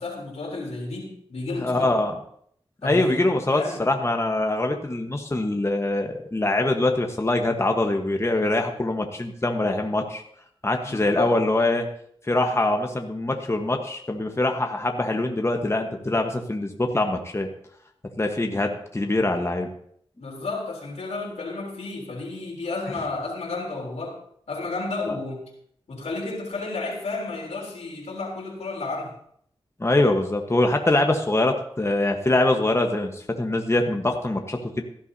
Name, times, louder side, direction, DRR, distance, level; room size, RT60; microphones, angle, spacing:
voice 1, 0.0-1.9 2.8-3.8 10.8-11.4 20.2-24.2 24.5-25.4 25.9-29.1, left 3 dB, 90° left, -2 dB, 3.5 m, -32 dB
voice 2, 1.5-2.1 2.8-10.2 10.6-11.9 12.3-17.5 18.2-19.7 29.8-34.8, left 2 dB, 25° left, 3 dB, 1.2 m, -23 dB
16.5 x 12.0 x 2.8 m, 0.66 s
cardioid pair, 55°, 11 cm